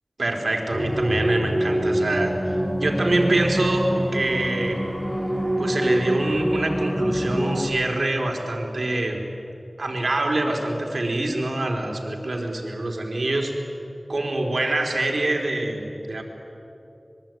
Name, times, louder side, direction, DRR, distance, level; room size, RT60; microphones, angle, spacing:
voice 1, 0.2-2.3 2.8-4.8 5.6-9.2 9.8-13.5 14.1-16.2, right 2 dB, 75° right, 1 dB, 4.0 m, -25 dB
sound 1, 0.7-7.6, equal, 10° left, 6.4 m, -25 dB
26.0 x 22.5 x 9.3 m, 2.8 s
wide cardioid pair, 60°, 0 cm